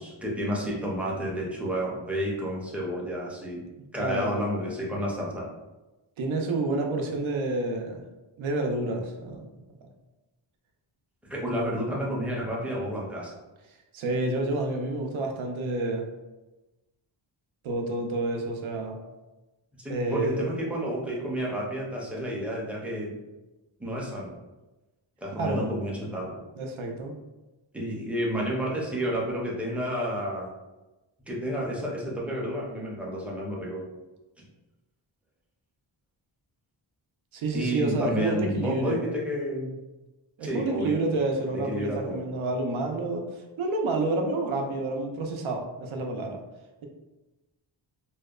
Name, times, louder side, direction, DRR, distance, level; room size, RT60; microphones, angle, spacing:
voice 1, 0.0-3.6 3.9-5.5 11.3-13.3 19.8-23.1 23.8-24.4 25.2-26.4 27.7-30.5 31.3-33.8 37.5-39.7 40.4-41.0 41.5-42.2, equal, 5° right, -4 dB, 0.4 m, -30 dB
voice 2, 4.0-4.4 6.2-8.0 8.4-9.5 9.8-9.9 13.9-16.1 17.6-19.0 19.9-20.4 25.3-25.7 26.6-27.2 37.3-39.0 40.4-46.4, right 2 dB, 80° right, 3 dB, 0.5 m, -29 dB
2.7 x 2.1 x 2.3 m, 1.1 s
wide cardioid pair, 180°, 48 cm